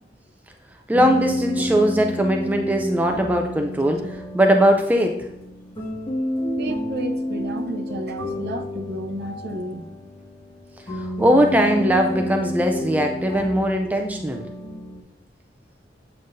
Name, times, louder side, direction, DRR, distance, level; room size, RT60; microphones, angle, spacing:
sound 1, 0.9-15.0, equal, 25° left, 1.5 m, -30 dB
voice 1, 0.9-4.1 4.3-5.3 10.9-14.5, equal, 10° right, 3 dB, 0.4 m, -20 dB
voice 2, 6.6-9.9, right 1 dB, 60° right, 4 dB, 0.6 m, -32 dB
7.8 x 5.5 x 2.6 m, 0.93 s
head